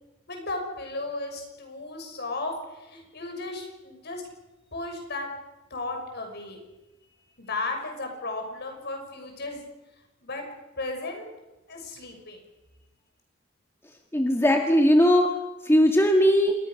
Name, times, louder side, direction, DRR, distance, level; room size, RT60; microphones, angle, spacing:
voice 1, 0.3-4.2 4.7-5.3 5.7-6.6 7.4-9.7 10.2-10.4 10.8-11.3 11.7-12.4, left 2 dB, 55° left, 4 dB, 6.4 m, -35 dB
voice 2, 14.1-15.3 15.6-16.6, equal, 10° left, 3 dB, 1.8 m, -19 dB
27.5 x 21.0 x 6.6 m, 1.0 s
head